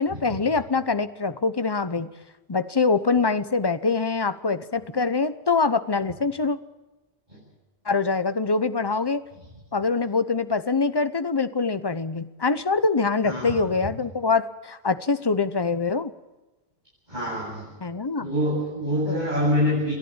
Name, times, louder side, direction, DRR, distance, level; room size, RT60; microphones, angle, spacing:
voice 1, 0.0-2.1 2.5-6.6 7.9-9.2 9.7-16.1 17.8-18.3 19.1-19.2, left 4 dB, 25° left, 13 dB, 0.8 m, -24 dB
voice 2, 17.1-17.7 18.2-19.9, equal, 40° right, -7 dB, 8.3 m, -25 dB
29.0 x 11.5 x 8.9 m, 1.1 s
omnidirectional pair, 1.1 m